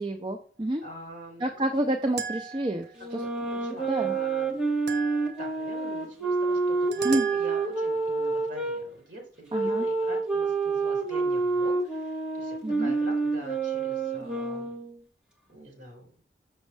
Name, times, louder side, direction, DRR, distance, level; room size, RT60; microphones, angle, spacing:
voice 1, 0.0-0.8 1.4-3.2 3.9-4.1 7.0-7.3 9.5-9.9 12.6-12.9, right 1 dB, 25° right, 4 dB, 0.5 m, -29 dB
voice 2, 0.8-1.5 3.0-4.6 5.0-14.7 15.5-16.1, equal, 50° right, 0 dB, 2.7 m, -45 dB
sound 1, 2.2-3.0 4.9-5.6 6.9-7.9, right 7 dB, 80° right, 1.0 m, -37 dB
sound 2, 3.0-8.8 9.5-15.0, right 4 dB, 5° right, 1.5 m, -28 dB
6.3 x 6.3 x 3.3 m, 0.43 s
head